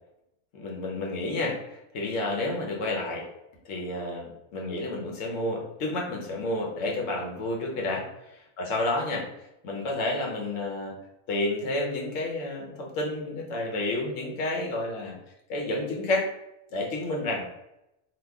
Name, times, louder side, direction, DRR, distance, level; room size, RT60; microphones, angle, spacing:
voice 1, 0.5-3.3 3.6-9.3 9.6-11.0 11.3-15.2 15.5-16.3 16.7-17.4, left 2 dB, 90° left, -1 dB, 1.1 m, -30 dB
2.9 x 2.3 x 3.4 m, 0.86 s
omnidirectional pair, 1.3 m